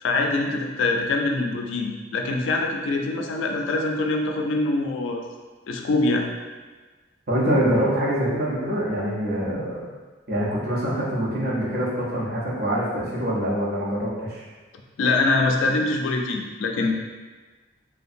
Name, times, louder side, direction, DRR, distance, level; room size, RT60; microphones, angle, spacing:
voice 1, 0.0-5.2 5.7-6.2 15.0-16.9, left 3 dB, 80° left, 2 dB, 0.3 m, -24 dB
voice 2, 7.3-9.9 10.3-14.4, equal, 50° right, -6 dB, 0.6 m, -25 dB
2.6 x 2.2 x 2.5 m, 1.3 s
head